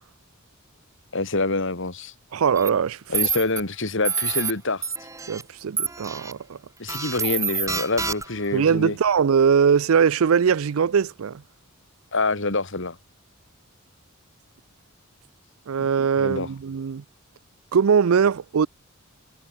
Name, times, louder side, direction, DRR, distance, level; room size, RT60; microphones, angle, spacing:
voice 1, 1.1-2.1 3.1-4.8 6.8-9.0 12.1-13.0 15.8-15.9 16.2-16.5, left 3 dB, 65° left, 2.7 m, -26 dB
voice 2, 2.3-3.3 5.3-6.6 8.5-11.4 15.7-17.0 17.7-18.7, right 6 dB, 75° right, 0.5 m, -21 dB
sound 1, 2.6-2.7 3.1-3.6 4.0-4.5 4.8-5.4 5.8-6.3 6.9-8.5, right 5 dB, 15° right, 1.5 m, -27 dB
head